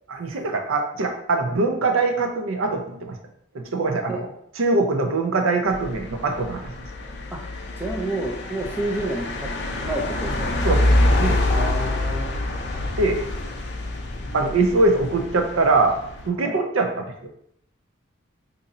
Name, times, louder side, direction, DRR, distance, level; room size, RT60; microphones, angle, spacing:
voice 1, 0.1-3.1 3.7-4.3 4.6-6.6 10.6-10.9 11.2-11.4 13.0-13.2 14.3-16.0 16.3-17.3, right 3 dB, 85° right, 4 dB, 0.6 m, -22 dB
sound 1, 5.7-16.3, left 1 dB, 55° left, 0.5 m, -26 dB
voice 2, 7.8-9.5 9.8-10.5 11.5-12.4 16.4-16.6, right 2 dB, 10° right, 0 dB, 0.4 m, -29 dB
4.0 x 2.6 x 2.6 m, 0.70 s
head